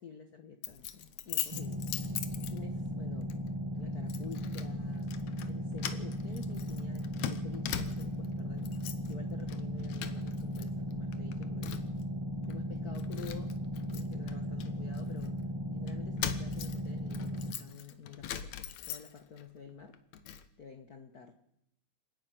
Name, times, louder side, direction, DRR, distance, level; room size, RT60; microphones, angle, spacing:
voice 1, 0.0-3.4 3.8-5.2 5.5-8.7 9.1-11.8 12.4-13.6 13.9-15.4 15.7-20.0 20.6-21.3, left 6 dB, 55° left, 6 dB, 1.0 m, -50 dB
Keys jangling, 0.6-2.9 3.3-3.5 4.1-4.7 5.0-5.5 5.8-8.3 8.6-9.1 9.4-10.6 10.9-12.0 12.5-12.6 12.9-15.3 15.9-19.4 19.8-20.5, left 10 dB, 70° left, 2.2 m, -41 dB
sound 1, 1.5-17.5, equal, 20° right, 0.6 m, -37 dB
28.0 x 10.0 x 9.2 m, 0.81 s
omnidirectional pair, 3.4 m